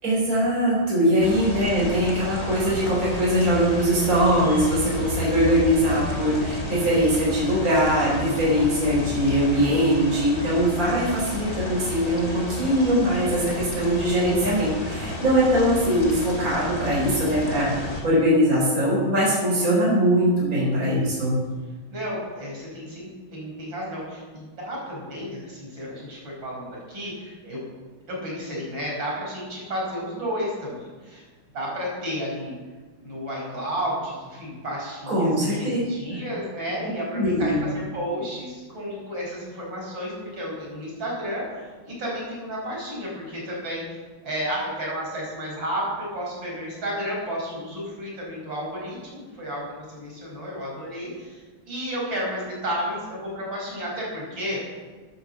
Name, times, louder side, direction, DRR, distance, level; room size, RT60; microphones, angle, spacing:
voice 1, 0.0-21.3 35.1-35.8 36.1-36.2 37.1-37.6, equal, 40° right, -5 dB, 4.6 m, -21 dB
sound 1, 1.2-18.0, left 1 dB, 30° left, 2.6 m, -32 dB
voice 2, 20.8-21.4 21.9-27.6 28.1-31.2 31.5-32.5 33.0-41.4 41.9-43.8 44.2-51.4 51.7-54.6, equal, 70° right, -4 dB, 5.9 m, -32 dB
12.5 x 9.6 x 7.5 m, 1.4 s
omnidirectional pair, 2.2 m